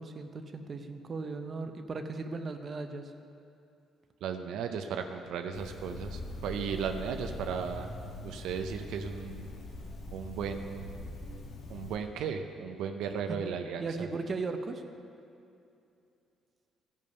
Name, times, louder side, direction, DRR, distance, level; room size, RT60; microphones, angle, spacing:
voice 1, 0.0-3.1 13.3-13.4 13.8-14.8, right 3 dB, 40° right, 6 dB, 0.7 m, -37 dB
voice 2, 4.2-7.9 8.2-9.5 10.1-10.9 11.7-13.8, right 6 dB, 85° right, 5 dB, 0.6 m, -35 dB
sound 1, 5.5-12.0, left 2 dB, 70° left, 1.3 m, -42 dB
15.0 x 5.4 x 5.4 m, 2.7 s
cardioid pair, 100°, 0 cm